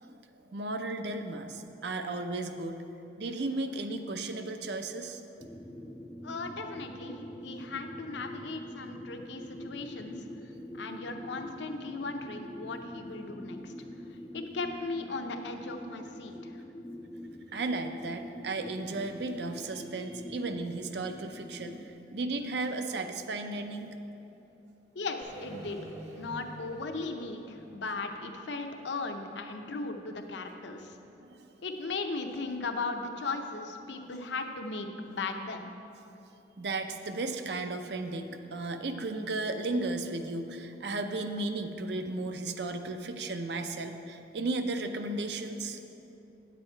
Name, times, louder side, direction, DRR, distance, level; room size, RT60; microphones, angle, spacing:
voice 1, 0.5-2.8 3.2-5.2 17.5-23.9 31.3-31.5 36.6-45.8, right 2 dB, 65° right, 7 dB, 0.5 m, -34 dB
sound 1, 5.4-21.9, equal, 10° left, 0.4 m, -44 dB
voice 2, 6.2-10.2 10.7-13.7 14.3-16.6 24.9-25.8 26.2-31.0 31.6-35.7, left 3 dB, 75° left, 5 dB, 0.7 m, -37 dB
sound 2, 25.2-29.3, right 1 dB, 40° right, 1.1 m, -47 dB
9.7 x 7.6 x 4.4 m, 2.9 s
head